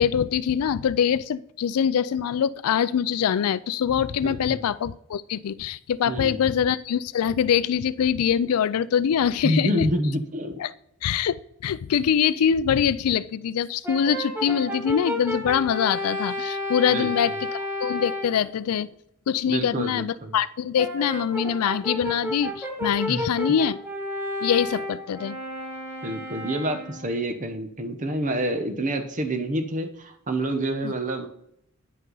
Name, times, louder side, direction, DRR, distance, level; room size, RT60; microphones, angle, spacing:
voice 1, 0.0-9.9 10.6-10.7 11.0-18.9 19.3-23.8 24.4-25.4 30.8-30.9, left 8 dB, 90° left, 18 dB, 0.4 m, -24 dB
voice 2, 4.2-4.6 6.1-6.4 9.4-10.6 16.9-17.1 19.5-20.4 23.1-23.2 26.0-31.3, right 1 dB, 35° right, 7 dB, 0.9 m, -27 dB
Brass instrument, 13.8-18.4 20.8-27.1, left 1 dB, 10° right, 1.2 m, -32 dB
9.6 x 5.3 x 3.9 m, 0.75 s
head